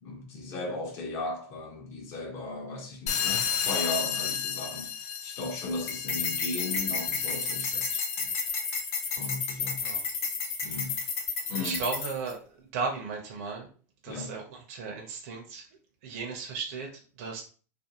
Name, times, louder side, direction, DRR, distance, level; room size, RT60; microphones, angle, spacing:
voice 1, 0.0-8.3 9.2-9.8 10.6-11.0 11.5-11.8 14.1-14.3, left 2 dB, 30° left, 0.6 m, -36 dB
sound 1, 3.1-8.3, left 8 dB, 80° left, 0.5 m, -33 dB
sound 2, 5.9-12.3, left 5 dB, 60° left, 0.9 m, -32 dB
voice 2, 11.6-13.7 14.0-14.4 14.7-15.7 16.0-17.4, right 4 dB, 50° right, 0.6 m, -35 dB
2.5 x 2.2 x 2.7 m
supercardioid pair, 165°, 9 cm